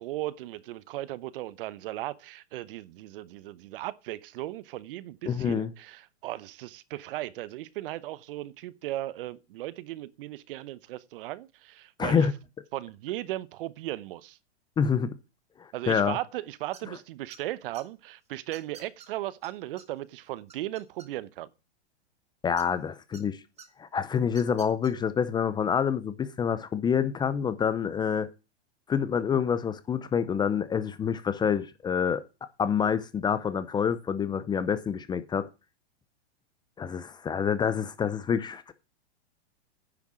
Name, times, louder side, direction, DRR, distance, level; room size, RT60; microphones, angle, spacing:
voice 1, 0.0-12.3 12.7-14.4 15.7-21.5, right 15 dB, 55° right, 0.9 m, -37 dB
voice 2, 5.3-5.7 12.0-12.3 14.8-15.1 15.6-16.2 22.4-23.4 23.8-28.3 28.9-32.2 32.6-35.5 36.8-38.7, left 7 dB, 15° left, 0.6 m, -27 dB
sound 1, 16.7-17.0 17.3-17.8 18.5-19.1 19.4-19.5 19.8-19.9 20.2-21.4 22.6-23.2 23.6-23.7 24.3-24.9, right 7 dB, 20° right, 1.8 m, -48 dB
10.0 x 7.1 x 6.2 m
hypercardioid pair, 130°, 34 cm